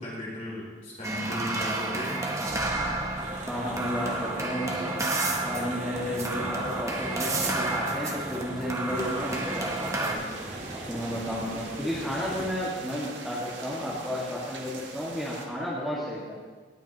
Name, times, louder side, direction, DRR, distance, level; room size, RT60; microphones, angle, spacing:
voice 1, 0.0-2.2, equal, 40° left, -7 dB, 3.7 m, -36 dB
sound 1, 1.0-10.1, right 2 dB, 15° right, 0.9 m, -31 dB
sound 2, 3.2-12.5, right 1 dB, 40° right, 1.6 m, -40 dB
voice 2, 3.5-5.0 5.4-10.2 10.7-16.4, equal, ahead, -8 dB, 1.8 m, -33 dB
sound 3, 8.9-15.5, right 3 dB, 75° right, 1.4 m, -43 dB
17.5 x 9.1 x 3.0 m, 1.4 s
head